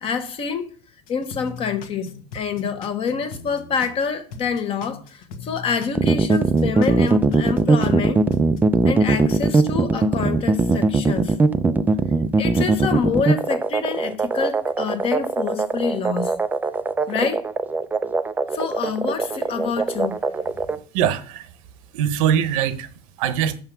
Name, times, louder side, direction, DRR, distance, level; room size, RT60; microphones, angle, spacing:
voice 1, 0.0-0.7 1.1-8.2 8.8-11.4 12.4-16.3 17.1-17.5 18.5-20.2, left 6 dB, 30° left, 1.2 m, -27 dB
sound 1, 1.1-4.0 4.3-8.0 8.3-8.6, left 5 dB, 70° left, 1.4 m, -39 dB
sound 2, 6.0-20.8, right 3 dB, 10° right, 0.4 m, -20 dB
voice 2, 20.7-21.5 21.9-22.9 23.2-23.6, right 9 dB, 70° right, 0.9 m, -22 dB
6.7 x 5.7 x 6.0 m
supercardioid pair, 145°, 18 cm